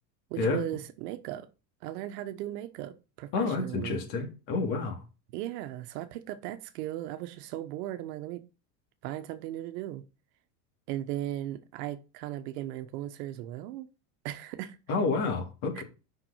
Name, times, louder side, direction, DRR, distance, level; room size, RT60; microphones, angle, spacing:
voice 1, 0.3-1.5 1.8-4.0 5.3-8.4 9.0-10.0 10.9-13.9 14.2-14.8 15.7-15.8, right 13 dB, 70° right, 1.1 m, -37 dB
voice 2, 3.3-5.0 14.9-15.8, left 4 dB, 60° left, 2.7 m, -29 dB
6.0 x 5.8 x 5.6 m
supercardioid pair, 120°, 49 cm